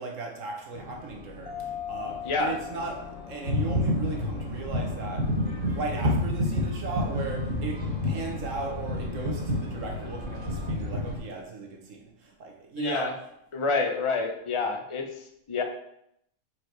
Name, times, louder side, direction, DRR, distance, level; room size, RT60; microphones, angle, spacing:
voice 1, 0.0-13.1, right 3 dB, 65° right, 2 dB, 1.5 m, -37 dB
sound 1, 0.7-10.7, left 3 dB, 70° left, 1.3 m, -46 dB
Mallet percussion, 1.5-4.0, left 9 dB, 90° left, 1.5 m, -39 dB
voice 2, 2.2-2.6 12.8-13.1 13.5-15.1 15.5-15.6, left 4 dB, 35° left, 4 dB, 0.5 m, -27 dB
sound 2, 3.4-11.2, left 1 dB, 35° right, 2.0 m, -29 dB
4.9 x 4.6 x 4.6 m, 0.76 s
omnidirectional pair, 1.5 m